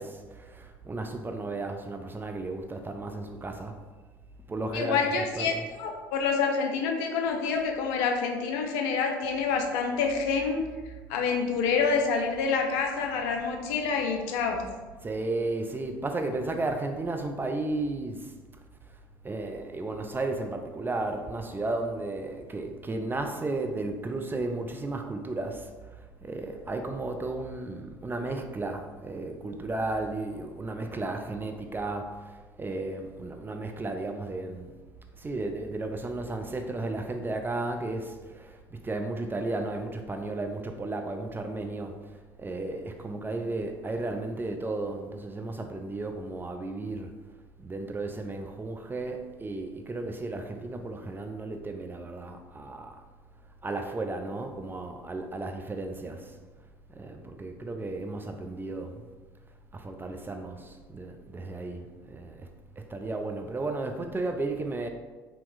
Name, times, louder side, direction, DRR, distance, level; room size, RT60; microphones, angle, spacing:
voice 1, 0.0-3.8 4.5-5.7 15.0-18.3 19.2-25.7 26.2-34.7 35.2-41.9 42.4-47.1 47.6-53.0 53.6-56.3 56.9-59.0 59.7-62.5 62.9-64.9, right 2 dB, 20° right, 5 dB, 0.4 m, -34 dB
voice 2, 4.7-5.5 5.8-10.6 11.1-14.6, left 5 dB, 65° left, 3 dB, 0.5 m, -27 dB
3.7 x 2.8 x 2.6 m, 1.3 s
hypercardioid pair, 60°, 11 cm